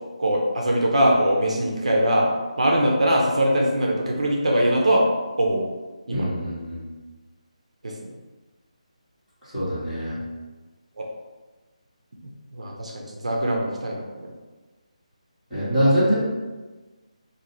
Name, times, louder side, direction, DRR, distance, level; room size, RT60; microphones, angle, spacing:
voice 1, 0.2-5.0 5.4-5.7 6.1-6.3 7.8-7.9 11.0-11.1 12.5-14.3, right 1 dB, 65° right, -1 dB, 0.6 m, -22 dB
voice 2, 6.1-6.8 9.5-10.2 15.5-16.1, equal, 5° left, -19 dB, 1.4 m, -23 dB
3.0 x 2.7 x 3.8 m, 1.3 s
hypercardioid pair, 180°, 4 cm